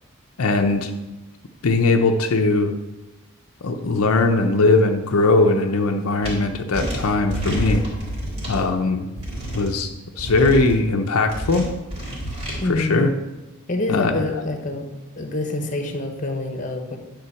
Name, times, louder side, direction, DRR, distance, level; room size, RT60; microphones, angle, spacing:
voice 1, 0.4-0.9 1.6-2.7 3.6-7.8 8.5-9.1 9.5-11.7 12.7-13.1 13.9-14.2, left 3 dB, 85° left, 4 dB, 0.7 m, -20 dB
sound 1, 6.2-6.3 6.7-8.6 9.2-9.7 10.2-10.8 11.3-12.6, right 1 dB, 30° right, 2.7 m, -28 dB
voice 2, 12.6-13.1 13.7-14.9 15.2-17.0, left 2 dB, 35° left, 5 dB, 1.0 m, -26 dB
9.6 x 3.9 x 6.9 m, 1.1 s
head